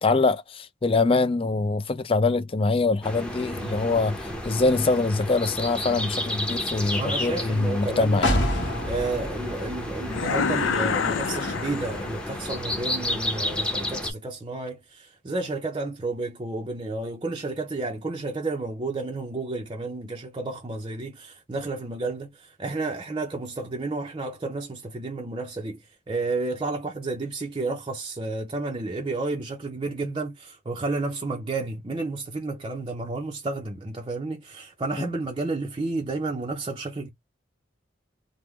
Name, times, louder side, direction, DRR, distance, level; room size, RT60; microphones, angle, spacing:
voice 1, 0.0-4.2 4.4-8.3, left 3 dB, 30° left, 0.4 m, -23 dB
sound 1, 3.0-14.1, left 1 dB, 5° left, 0.8 m, -32 dB
voice 2, 3.6-4.0 7.0-8.4 8.9-25.8 26.1-37.1, right 3 dB, 25° right, 0.5 m, -31 dB
sound 2, 8.2-12.0 12.3-12.4, left 1 dB, 65° left, 1.1 m, -29 dB
sound 3, 10.1-12.4, left 5 dB, 90° left, 0.5 m, -27 dB
3.5 x 2.1 x 3.0 m
head